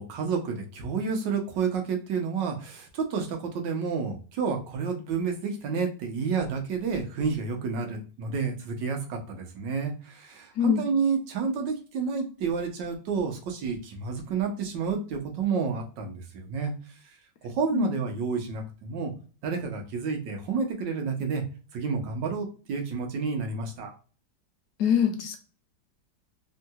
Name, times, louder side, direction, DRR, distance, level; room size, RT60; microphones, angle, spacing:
voice 1, 0.0-16.7 17.4-19.1 19.4-21.4 21.7-23.9, right 5 dB, 85° right, 3 dB, 1.5 m, -30 dB
voice 2, 24.8-25.4, left 8 dB, 70° left, 5 dB, 1.1 m, -24 dB
3.7 x 2.7 x 2.2 m, 0.36 s
omnidirectional pair, 1.9 m